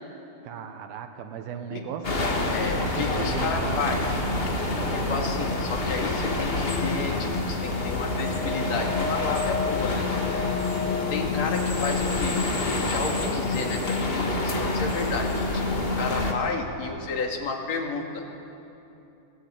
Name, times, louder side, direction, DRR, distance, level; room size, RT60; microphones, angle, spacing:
voice 1, 0.4-2.6 3.0-4.5 12.7-12.9, right 7 dB, 85° right, 7 dB, 3.0 m, -37 dB
sound 1, 2.0-16.3, left 2 dB, 35° left, 0.9 m, -27 dB
voice 2, 2.5-4.1 4.9-10.1 11.1-18.2, left 4 dB, 50° left, 1 dB, 3.0 m, -31 dB
sound 2, 7.4-12.2, left 4 dB, 55° right, 5.6 m, -34 dB
21.5 x 16.5 x 9.1 m, 2.9 s
omnidirectional pair, 4.2 m